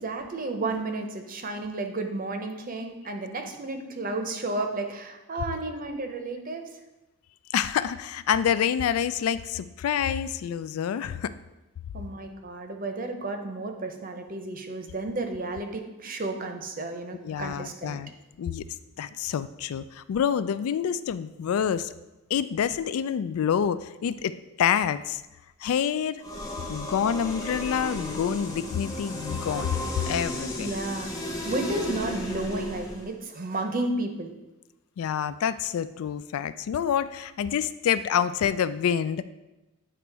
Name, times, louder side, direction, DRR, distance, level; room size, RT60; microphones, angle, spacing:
voice 1, 0.0-6.6 11.9-18.0 30.6-34.3, right 2 dB, 40° right, 5 dB, 0.7 m, -32 dB
voice 2, 7.5-11.3 17.2-18.1 18.4-18.6 19.0-21.9 22.3-25.2 25.6-26.2 26.7-29.7 30.1-30.7 35.0-39.2, left 8 dB, 80° left, 15 dB, 0.3 m, -27 dB
sound 1, 26.2-33.1, left 1 dB, 15° left, 0.9 m, -34 dB
8.9 x 3.0 x 4.6 m, 1.0 s
head